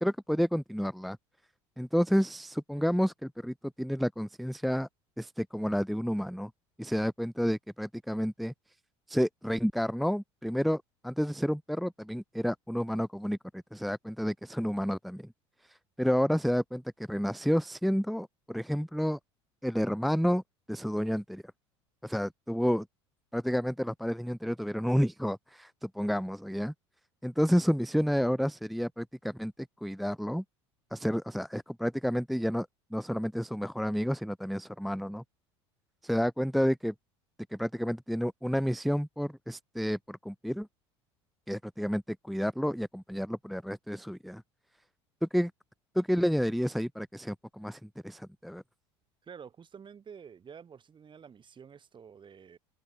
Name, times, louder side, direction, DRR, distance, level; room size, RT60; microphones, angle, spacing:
voice 1, 0.0-1.2 1.8-4.9 5.2-6.5 6.8-8.5 9.1-15.3 15.6-19.2 19.6-20.4 20.7-21.4 22.0-22.9 23.3-26.7 27.2-29.5 29.8-30.4 30.9-35.2 36.0-36.9 37.5-40.7 41.5-44.4 45.2-45.5 45.9-48.6, equal, ahead, 0.4 m, -30 dB
voice 2, 49.2-52.6, right 7 dB, 35° right, 3.9 m, -49 dB
hypercardioid pair, 80°, 15 cm